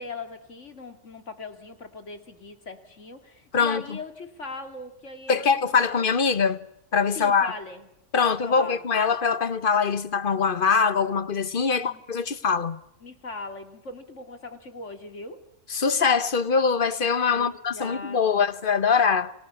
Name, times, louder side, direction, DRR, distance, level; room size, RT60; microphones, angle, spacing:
voice 1, 0.0-5.7 7.1-7.9 8.2-8.8 11.7-12.0 13.0-15.4 17.3-18.5, left 3 dB, 70° left, 3.0 m, -40 dB
voice 2, 5.3-6.6 6.9-7.5 8.1-12.8 15.7-19.3, left 5 dB, 45° left, 1.3 m, -23 dB
30.0 x 26.5 x 7.2 m
omnidirectional pair, 1.3 m